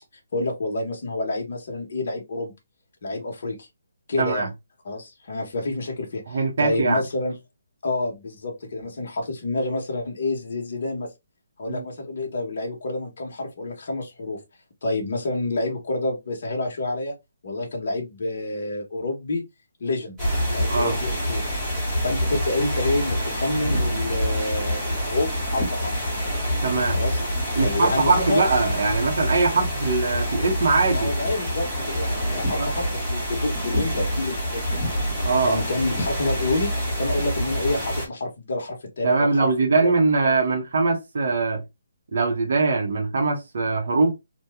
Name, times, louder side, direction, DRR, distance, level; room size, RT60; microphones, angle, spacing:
voice 1, 0.3-2.5 3.0-3.7 4.1-4.5 4.8-7.4 7.8-11.1 11.6-14.4 14.8-17.1 17.4-19.4 19.8-20.2 20.5-21.5 22.0-25.9 26.9-27.2 27.6-28.5 30.9-34.8 35.4-36.7 37.0-39.9, left 2 dB, 40° left, 1.0 m, -28 dB
voice 2, 6.3-7.0 11.7-11.8 20.7-20.9 26.6-27.0 27.6-31.1 32.5-32.7 35.2-35.6 39.0-41.6 42.1-44.1, right 3 dB, 45° right, 0.7 m, -22 dB
sound 1, 20.2-38.1, equal, 5° right, 0.9 m, -26 dB
2.8 x 2.1 x 3.4 m
hypercardioid pair, 180°, 0 cm